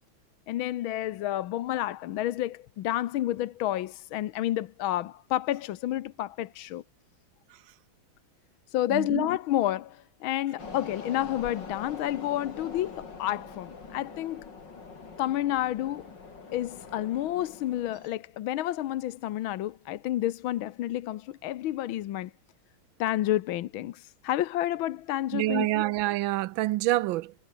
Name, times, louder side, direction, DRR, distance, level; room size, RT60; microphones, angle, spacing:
voice 1, 0.5-6.8 8.7-14.5 15.2-16.1 16.5-22.3 23.0-25.8, left 13 dB, 85° left, 1.6 m, -30 dB
voice 2, 8.9-9.3 25.3-27.3, right 16 dB, 80° right, 1.3 m, -27 dB
sound 1, 10.6-18.1, left 4 dB, 60° left, 3.8 m, -44 dB
omnidirectional pair, 2.2 m